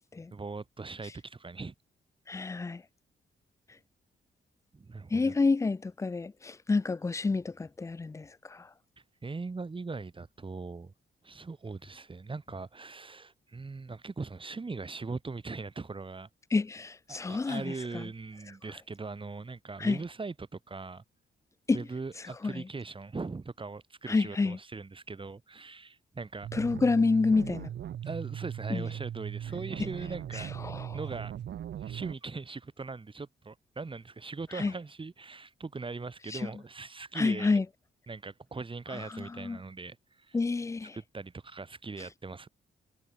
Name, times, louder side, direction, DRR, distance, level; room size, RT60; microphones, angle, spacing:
voice 1, 0.3-1.7 4.7-5.4 9.2-10.9 11.2-16.3 17.1-21.0 21.7-26.5 28.0-30.5 30.9-31.3 31.8-37.6 38.1-40.4 40.9-42.5, right 4 dB, 30° right, 5.6 m, -40 dB
voice 2, 2.3-2.8 5.1-8.7 16.5-18.1 19.8-20.0 21.7-21.9 22.4-22.7 24.1-24.6 26.5-27.7 28.7-28.9 29.8-29.9 30.3-31.0 34.5-34.7 36.3-36.5 37.1-37.7 38.9-39.6 40.3-40.9, left 3 dB, 15° left, 0.4 m, -29 dB
sound 1, 26.4-32.1, right 10 dB, 70° right, 1.1 m, -39 dB
cardioid pair, 120°, 19 cm